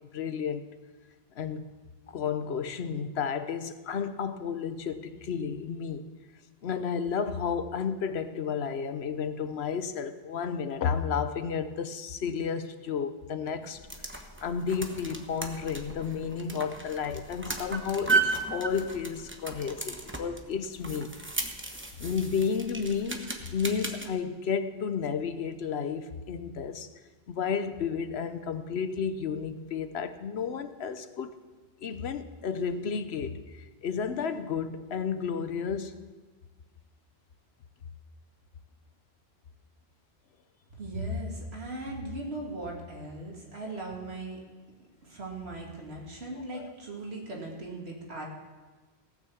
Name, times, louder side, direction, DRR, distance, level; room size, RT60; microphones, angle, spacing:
voice 1, 0.1-0.6 1.3-1.6 2.1-6.0 6.6-13.8 14.1-21.1 22.0-26.9 27.3-31.4 31.8-36.0 46.3-46.7, left 6 dB, 90° left, 11 dB, 1.0 m, -32 dB
sound 1, 13.6-24.1, right 3 dB, 10° right, 1.0 m, -35 dB
voice 2, 40.8-44.4 45.0-48.2, right 1 dB, 90° right, -1 dB, 2.6 m, -38 dB
17.5 x 6.3 x 7.2 m, 1.3 s
omnidirectional pair, 1.1 m